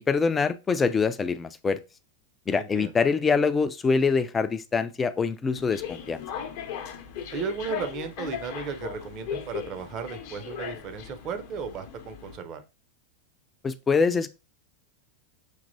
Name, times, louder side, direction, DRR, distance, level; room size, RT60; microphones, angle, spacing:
voice 1, 0.0-1.8 2.5-6.2 13.6-14.3, left 5 dB, 15° left, 0.4 m, -24 dB
voice 2, 2.5-2.9 7.3-12.6, right 5 dB, 35° right, 0.7 m, -35 dB
sound 1, 5.6-12.4, left 8 dB, 50° left, 0.7 m, -38 dB
6.3 x 2.9 x 2.6 m
figure-of-eight pair, 90°, 0 cm